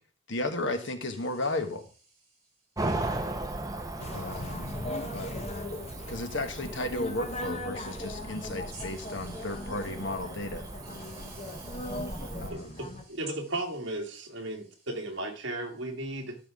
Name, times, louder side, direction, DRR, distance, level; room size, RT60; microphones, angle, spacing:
voice 1, 0.3-1.8 4.1-4.7 5.1-5.3 6.1-10.6 12.4-12.8, left 2 dB, 65° left, 7 dB, 1.3 m, -34 dB
voice 2, 1.2-1.6 8.7-10.1 10.8-13.2, right 2 dB, 35° right, -5 dB, 5.0 m, -53 dB
Cricket / Motor vehicle (road), 2.8-12.5, right 2 dB, 15° right, 0.9 m, -38 dB
sound 1, 4.0-13.0, left 1 dB, 30° left, 1.0 m, -39 dB
voice 3, 12.5-16.4, right 1 dB, 60° right, 2 dB, 1.8 m, -35 dB
13.5 x 5.8 x 3.5 m, 0.38 s
head